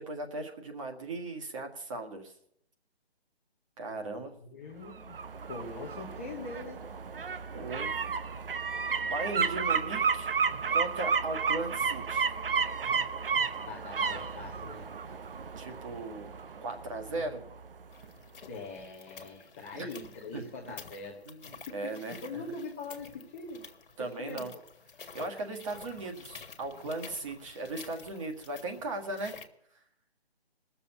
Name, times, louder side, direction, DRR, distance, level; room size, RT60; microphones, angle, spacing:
voice 1, 0.0-2.3 3.8-4.3 7.5-7.9 9.0-10.3 10.7-12.3 15.6-16.3 16.6-17.4 19.7-19.9 20.3-20.4 21.2-22.4 24.0-24.5 25.1-29.3, right 2 dB, 30° right, 3 dB, 1.8 m, -37 dB
voice 2, 3.9-5.2 5.5-6.9 13.7-14.9 17.1-17.3 18.5-23.6 24.0-24.6, left 3 dB, 10° left, -2 dB, 0.7 m, -43 dB
sound 1, 4.9-17.7 18.0-18.1, right 6 dB, 60° right, 0.8 m, -32 dB
sound 2, 17.9-29.5, left 5 dB, 55° left, 1.7 m, -50 dB
19.0 x 7.1 x 7.8 m, 0.71 s
figure-of-eight pair, 155°, 32 cm